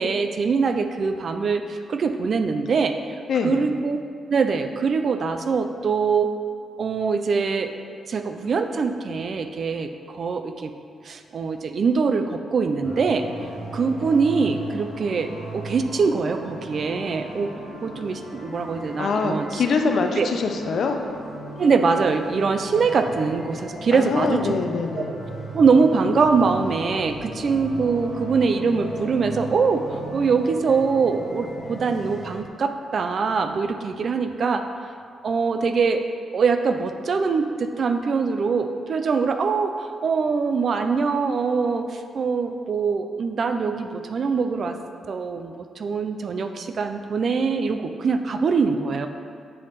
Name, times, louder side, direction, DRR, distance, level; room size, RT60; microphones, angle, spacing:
voice 1, 0.0-3.1 3.4-4.0 4.3-6.3 6.8-7.7 8.1-10.7 11.0-13.3 13.7-17.5 17.8-19.6 20.2-20.3 21.6-24.5 25.1-25.2 25.5-34.6 35.2-36.0 36.3-44.8 45.1-49.1, right 5 dB, 45° right, 7 dB, 0.3 m, -23 dB
sound 1, 12.8-32.4, right 1 dB, 5° left, 1.5 m, -37 dB
voice 2, 19.0-21.0 23.9-25.1, left 4 dB, 55° left, 5 dB, 0.4 m, -24 dB
7.6 x 3.2 x 4.1 m, 2.2 s
cardioid pair, 150°, 0 cm